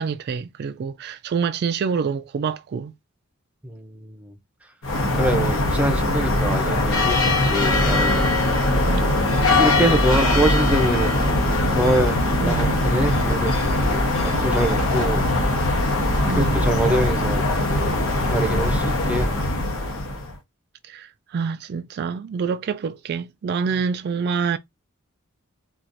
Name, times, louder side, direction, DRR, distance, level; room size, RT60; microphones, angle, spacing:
voice 1, 0.0-2.9 8.9-9.0 12.4-12.8 16.2-16.7 20.8-24.6, right 6 dB, 50° right, 0.3 m, -26 dB
voice 2, 3.6-4.3 5.1-8.3 9.5-11.2 11.7-13.5 14.2-15.2 16.3-17.4 18.2-19.3, right 1 dB, 5° right, 0.6 m, -24 dB
sound 1, 4.8-20.3, left 2 dB, 75° left, 1.2 m, -21 dB
4.4 x 2.4 x 2.6 m
head